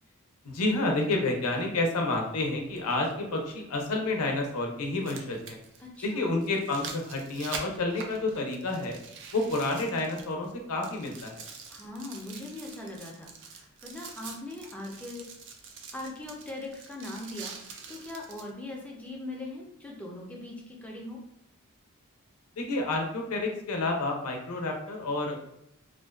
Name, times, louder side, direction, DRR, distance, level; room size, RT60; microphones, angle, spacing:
voice 1, 0.4-5.6 6.0-9.0 9.3-11.4 22.6-25.5, left 2 dB, 90° left, 2 dB, 0.6 m, -29 dB
sound 1, 1.6-1.7 3.6-3.7 4.8-10.5 10.8-18.5 19.1-19.2, right 5 dB, 55° right, 0.4 m, -45 dB
voice 2, 5.8-6.3 11.7-15.3 15.9-21.2, left 2 dB, 5° left, -2 dB, 0.4 m, -40 dB
2.4 x 2.2 x 2.3 m, 0.80 s
head